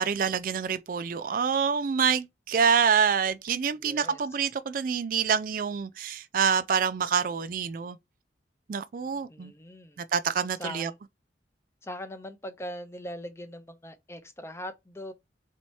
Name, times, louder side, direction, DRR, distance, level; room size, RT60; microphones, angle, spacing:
voice 1, 0.0-8.0 8.7-9.5 10.0-10.9, right 6 dB, 45° right, 0.3 m, -26 dB
voice 2, 3.8-4.2 9.3-10.0 10.6-11.0 11.8-15.1, equal, 15° left, 0.5 m, -40 dB
4.2 x 2.8 x 4.5 m
head